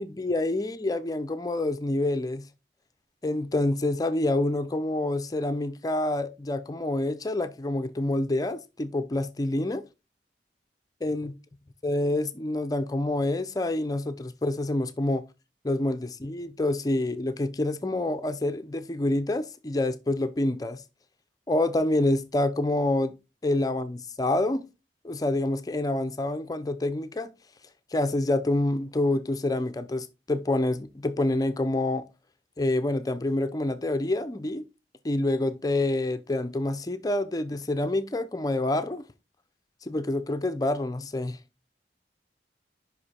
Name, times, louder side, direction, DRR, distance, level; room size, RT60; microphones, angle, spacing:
voice 1, 0.0-2.4 3.2-9.8 11.0-11.3 11.8-15.2 15.6-20.8 21.5-23.1 23.4-24.6 25.0-27.3 27.9-32.1 32.6-34.6 35.0-39.0 39.9-41.4, left 2 dB, 20° left, 0.4 m, -27 dB
5.4 x 4.9 x 4.2 m
head